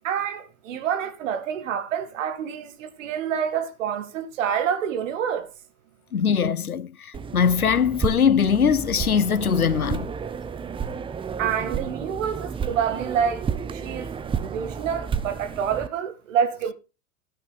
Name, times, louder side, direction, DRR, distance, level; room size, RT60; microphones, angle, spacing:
voice 1, 0.0-5.5 11.4-14.1 14.4-16.7, right 8 dB, 60° right, 2.0 m, -27 dB
voice 2, 6.1-10.1, left 7 dB, 90° left, 0.8 m, -21 dB
sound 1, 7.1-15.9, right 6 dB, 10° right, 0.6 m, -31 dB
13.0 x 8.6 x 4.0 m
figure-of-eight pair, 95°, 42 cm